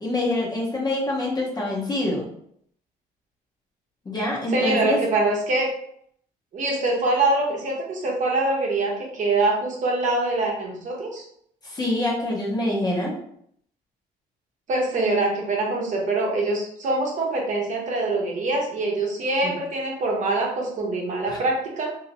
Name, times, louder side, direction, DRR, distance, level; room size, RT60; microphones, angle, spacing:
voice 1, 0.0-2.3 4.1-5.0 11.6-13.1 19.4-19.5 21.3-21.4, left 1 dB, 25° left, -3 dB, 0.9 m, -25 dB
voice 2, 4.5-5.7 6.5-11.2 14.7-22.0, right 2 dB, 45° right, -1 dB, 0.9 m, -24 dB
2.8 x 2.7 x 2.8 m, 0.68 s
cardioid pair, 110°, 17 cm